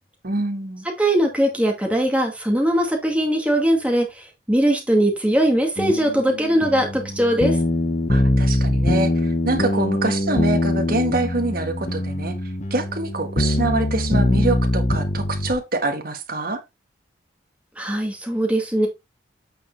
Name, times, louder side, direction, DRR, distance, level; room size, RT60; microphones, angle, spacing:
voice 1, 0.2-0.8 8.1-12.4 12.7-16.6, right 2 dB, 50° right, 1.7 m, -25 dB
voice 2, 1.0-7.6 17.8-18.9, right 1 dB, 5° right, 2.1 m, -20 dB
sound 1, 5.8-15.5, left 1 dB, 40° left, 1.1 m, -22 dB
8.6 x 5.1 x 3.3 m
head